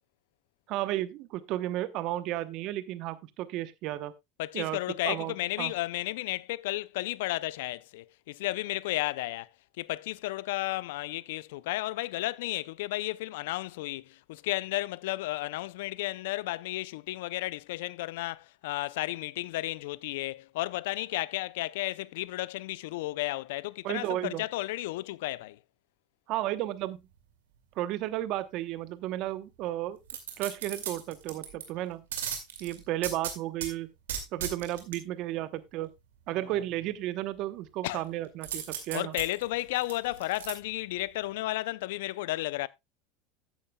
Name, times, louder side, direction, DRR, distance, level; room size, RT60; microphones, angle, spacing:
voice 1, 0.7-4.1 4.5-4.8 5.0-5.7 23.8-24.4 26.3-27.0 27.8-30.0 30.4-32.0 32.6-33.9 34.3-35.9 36.3-39.1, right 14 dB, 60° right, 0.9 m, -33 dB
voice 2, 4.4-9.5 9.8-25.6 37.8-38.0 38.9-42.7, left 18 dB, 75° left, 0.5 m, -33 dB
sound 1, 30.1-31.6 32.1-33.7 34.1-35.0 38.4-40.5 41.0-41.1, right 8 dB, 85° right, 2.3 m, -36 dB
13.5 x 8.9 x 2.2 m
hypercardioid pair, 85°, 0 cm